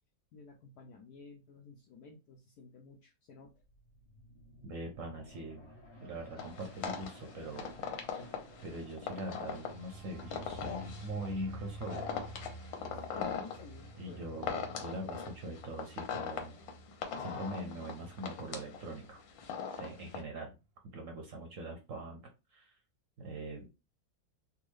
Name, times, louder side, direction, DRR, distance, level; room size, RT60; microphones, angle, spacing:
voice 1, 0.3-3.5 12.9-14.5 16.5-16.7 23.5-23.7, left 4 dB, 70° left, 1 dB, 1.0 m, -53 dB
sound 1, 3.5-16.7 17.1-17.2, left 1 dB, 25° left, 1.1 m, -58 dB
voice 2, 4.6-5.7 6.0-7.8 8.1-8.3 8.6-12.1 14.0-16.6 17.2-19.2 19.8-20.5 20.9-22.2 22.5-22.8 23.2-23.7, right 1 dB, 60° right, 3 dB, 0.8 m, -42 dB
sound 2, 6.4-20.2, left 6 dB, 85° left, 1.5 m, -41 dB
sound 3, 9.5-19.9 20.3-20.6, right 1 dB, 90° right, 0.6 m, -50 dB
3.6 x 2.3 x 3.1 m, 0.27 s
omnidirectional pair, 2.0 m